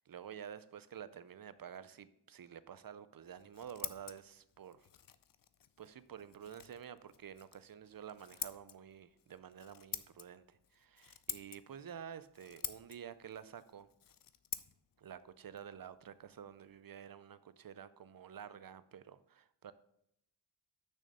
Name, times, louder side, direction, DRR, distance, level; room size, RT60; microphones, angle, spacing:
voice 1, 0.0-4.9 5.8-13.9 15.0-19.7, right 8 dB, 50° right, 0.5 m, -50 dB
Scissors, 3.2-16.8, left 9 dB, 50° left, 0.4 m, -49 dB
6.5 x 6.3 x 5.3 m
wide cardioid pair, 115°, 47 cm